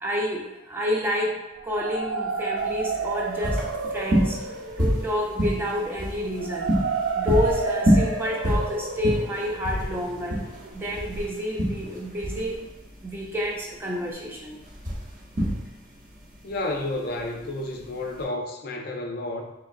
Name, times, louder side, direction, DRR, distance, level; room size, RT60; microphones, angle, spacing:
voice 1, 0.0-1.4 1.6-3.6 3.9-4.4 4.8-6.8 7.1-10.4 10.7-12.6 13.0-14.6, equal, 10° right, -1 dB, 0.3 m, -29 dB
sound 1, 1.6-11.4, right 4 dB, 80° right, 0.4 m, -32 dB
sound 2, 2.6-18.2, equal, 40° right, 0.8 m, -28 dB
voice 2, 16.4-19.5, left 2 dB, 50° left, 2 dB, 0.4 m, -31 dB
3.8 x 3.1 x 2.5 m, 1.1 s
head